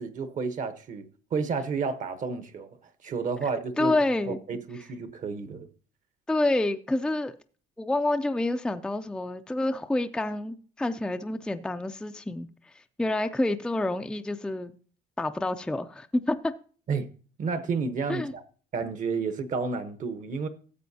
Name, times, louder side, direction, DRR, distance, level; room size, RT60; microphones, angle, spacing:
voice 1, 0.0-2.7 3.0-4.0 4.3-5.7 16.9-17.1 17.4-18.4 18.7-20.5, right 5 dB, 50° right, 0.9 m, -31 dB
voice 2, 3.8-4.4 6.3-7.3 7.8-12.5 12.7-14.7 15.2-16.5 18.1-18.3, left 2 dB, 5° left, 0.4 m, -28 dB
13.5 x 7.6 x 2.7 m
cardioid pair, 110°, 17 cm